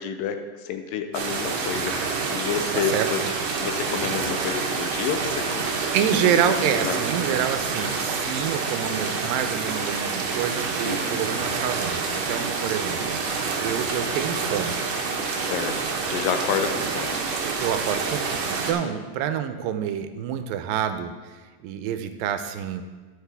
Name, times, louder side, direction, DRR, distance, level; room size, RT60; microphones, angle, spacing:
voice 1, 0.0-3.2 3.6-7.0 10.8-11.5 15.3-17.2 18.8-19.0, left 7 dB, 80° left, 7 dB, 2.3 m, -30 dB
sound 1, 1.1-18.7, right 4 dB, 65° right, 1.8 m, -27 dB
voice 2, 2.7-3.1 5.9-14.8 17.4-22.8, right 9 dB, 90° right, 9 dB, 2.3 m, -27 dB
13.0 x 6.6 x 3.4 m, 1.4 s
omnidirectional pair, 4.0 m